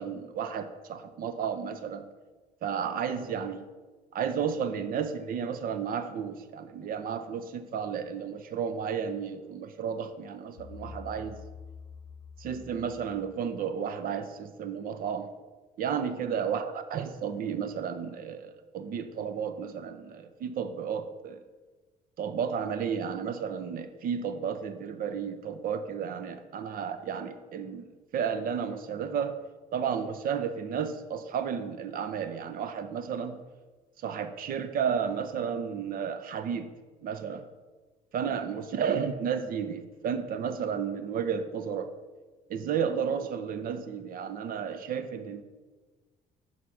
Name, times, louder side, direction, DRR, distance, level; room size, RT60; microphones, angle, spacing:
voice 1, 0.0-2.0 2.6-3.6 4.1-11.4 12.4-15.3 15.8-21.4 22.2-29.4 29.7-33.4 34.0-36.7 37.0-37.4 38.1-41.9 42.5-45.4, right 7 dB, 60° right, 10 dB, 0.6 m, -32 dB
sound 1, 10.6-13.7, left 5 dB, 75° left, 0.6 m, -47 dB
5.9 x 5.7 x 4.8 m, 1.3 s
cardioid pair, 110°, 17 cm